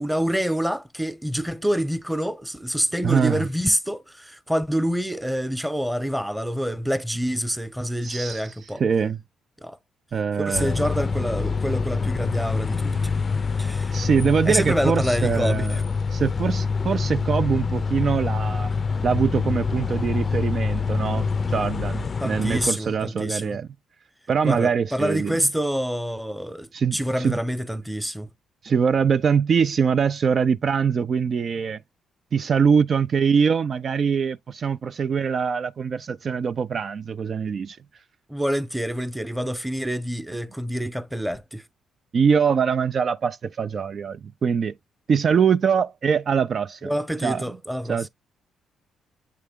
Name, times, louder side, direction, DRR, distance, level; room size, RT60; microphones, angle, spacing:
voice 1, 0.0-8.8 9.6-9.8 10.4-13.1 13.6-14.0 14.4-15.8 22.2-23.6 24.4-28.3 38.3-41.6 46.8-48.1, equal, 5° right, 0.9 m, -27 dB
voice 2, 3.0-3.5 8.0-8.5 8.8-9.2 10.1-10.8 13.9-15.8 16.1-18.7 19.0-23.7 24.3-25.4 26.7-27.4 28.6-31.8 32.3-37.8 42.1-44.7 45.1-46.9 47.2-47.4 47.9-48.1, right 6 dB, 50° right, 0.4 m, -23 dB
sound 1, 10.5-22.7, left 5 dB, 35° left, 0.4 m, -25 dB
8.4 x 3.3 x 3.6 m
cardioid pair, 90°, 0 cm